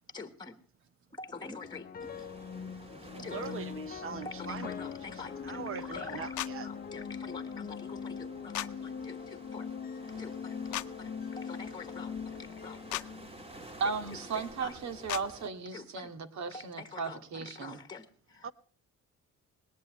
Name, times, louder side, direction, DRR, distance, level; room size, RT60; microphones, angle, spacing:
voice 1, 0.1-0.6 1.1-2.3 2.9-3.4 4.2-9.7 10.2-13.1 14.1-14.8 15.7-16.1 16.5-18.5, left 4 dB, 15° left, 1.4 m, -46 dB
sound 1, 1.6-13.9, left 6 dB, 30° left, 0.7 m, -41 dB
sound 2, 2.0-15.5, right 1 dB, 20° right, 2.0 m, -52 dB
voice 2, 3.1-4.7 5.4-6.7 18.4-18.5, right 7 dB, 50° right, 0.9 m, -41 dB
sound 3, 6.4-6.5 8.5-8.7 10.7-10.9 12.9-13.1 15.1-15.2, left 16 dB, 85° left, 0.7 m, -34 dB
voice 3, 13.8-17.8, right 5 dB, 70° right, 2.2 m, -36 dB
20.0 x 19.5 x 3.2 m
cardioid pair, 140°, 29 cm